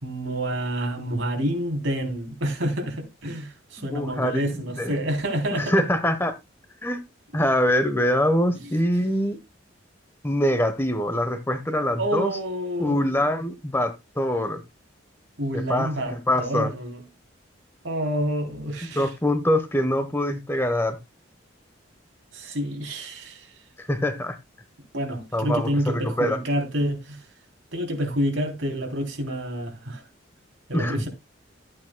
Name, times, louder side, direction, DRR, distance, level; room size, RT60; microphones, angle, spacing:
voice 1, 0.0-5.8 12.0-13.0 15.4-17.0 17.8-19.1 22.3-23.5 24.9-27.2 27.7-30.0 30.7-31.1, equal, 85° right, 3.2 m, -28 dB
voice 2, 3.8-5.0 5.5-6.3 6.8-7.0 7.3-9.4 10.2-12.3 12.8-14.6 15.5-16.7 18.9-21.0 23.8-24.4 25.3-26.4 30.7-31.1, left 1 dB, 10° left, 1.0 m, -24 dB
13.5 x 8.6 x 2.2 m
head